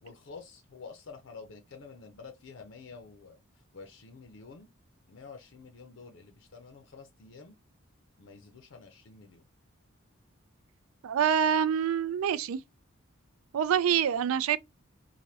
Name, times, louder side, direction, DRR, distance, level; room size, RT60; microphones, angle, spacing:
voice 1, 0.0-3.4 3.7-4.7 5.1-7.6 8.2-9.5, left 4 dB, 65° left, 0.5 m, -49 dB
voice 2, 11.0-12.6 13.5-14.6, right 8 dB, 80° right, 0.3 m, -26 dB
3.3 x 2.1 x 2.7 m
head